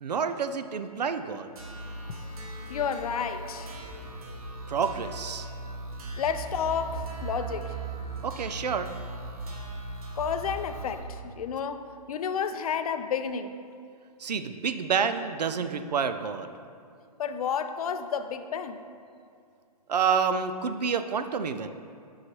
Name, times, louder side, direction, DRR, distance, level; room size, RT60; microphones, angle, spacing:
voice 1, 0.0-1.5 4.7-5.5 8.2-8.9 14.2-16.5 19.9-21.7, right 6 dB, 90° right, 10 dB, 0.4 m, -28 dB
sound 1, 1.6-11.0, right 3 dB, 65° right, 1.3 m, -38 dB
voice 2, 2.7-3.7 6.2-7.7 10.1-13.5 17.2-18.8, left 7 dB, 65° left, 9 dB, 0.4 m, -31 dB
6.4 x 5.5 x 3.0 m, 2.3 s
hypercardioid pair, 135°, 20 cm